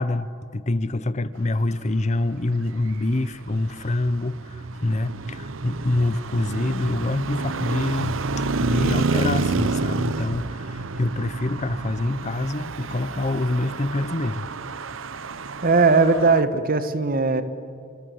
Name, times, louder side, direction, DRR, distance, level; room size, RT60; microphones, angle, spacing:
voice 1, 0.0-8.2 8.6-14.5, left 2 dB, 35° left, 16 dB, 0.8 m, -26 dB
Traffic noise roadway noise, 2.7-16.4, right 3 dB, 75° right, 0.9 m, -29 dB
voice 2, 15.6-17.4, right 4 dB, 45° right, 12 dB, 1.3 m, -18 dB
27.0 x 25.0 x 7.9 m, 2.6 s
head